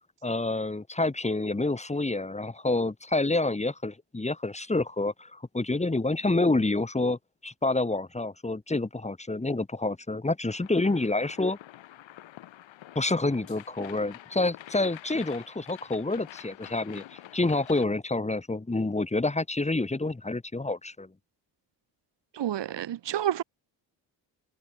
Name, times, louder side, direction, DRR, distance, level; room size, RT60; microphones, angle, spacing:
voice 1, 0.2-11.6 12.9-21.1, left 2 dB, 15° left, 2.8 m, -28 dB
sound 1, 10.5-17.9, left 14 dB, 80° left, 4.0 m, -47 dB
voice 2, 22.3-23.4, right 11 dB, 65° right, 2.9 m, -29 dB
cardioid pair, 90°, 45 cm